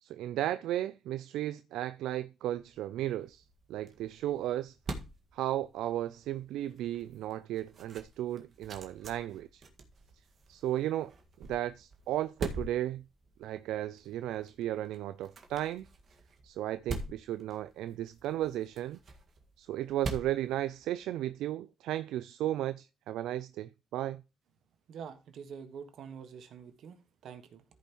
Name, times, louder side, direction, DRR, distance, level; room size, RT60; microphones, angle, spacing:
voice 1, 0.0-3.4 3.7-4.7 5.3-9.6 10.5-11.1 11.4-13.0 13.4-15.9 16.4-19.0 19.6-24.2, right 13 dB, 90° right, 0.3 m, -35 dB
sound 1, 2.6-21.3, right 2 dB, 50° right, 1.7 m, -46 dB
voice 2, 24.9-27.6, right 7 dB, 70° right, 1.5 m, -46 dB
14.0 x 5.6 x 3.0 m
cardioid pair, 90°, 0 cm